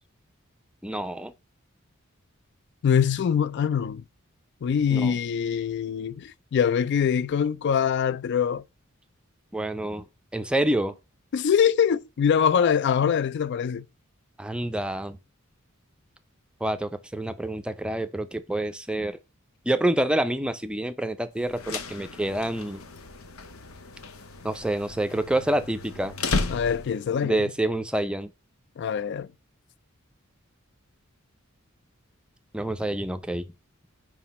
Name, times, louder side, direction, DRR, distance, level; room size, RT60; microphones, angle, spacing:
voice 1, 0.8-1.3 4.9-5.2 9.5-10.1 10.3-11.0 14.4-15.2 16.6-19.2 19.6-22.8 24.4-26.1 27.2-28.3 32.5-33.5, right 1 dB, 5° right, 0.5 m, -27 dB
voice 2, 2.8-4.0 4.6-8.6 11.3-13.8 26.5-27.4 28.8-29.3, left 7 dB, 55° left, 0.3 m, -23 dB
sound 1, 21.4-27.2, left 3 dB, 80° left, 0.8 m, -34 dB
5.8 x 5.0 x 4.1 m
head